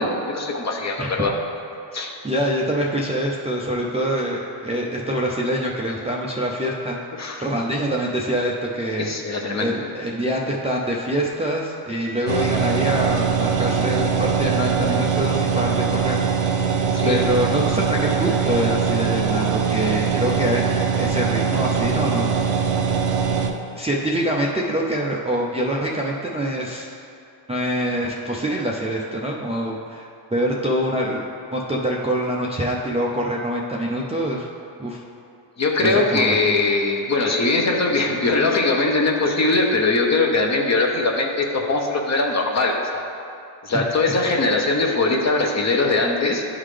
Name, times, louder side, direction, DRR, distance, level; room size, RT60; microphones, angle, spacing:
voice 1, 0.0-1.3 1.9-2.1 7.2-7.5 9.0-9.8 16.9-17.2 35.6-43.0 43.6-46.4, left 3 dB, 35° left, 1 dB, 0.8 m, -21 dB
voice 2, 2.2-9.1 9.6-16.2 16.6-16.7 17.0-22.3 22.9-23.0 23.8-26.9 27.5-31.3 31.5-34.5 34.8-35.0 35.8-36.5, equal, 15° right, -4 dB, 0.5 m, -25 dB
sound 1, 12.3-23.5, right 6 dB, 85° right, 0.8 m, -22 dB
11.0 x 3.8 x 3.3 m, 2.5 s
cardioid pair, 95°, 50 cm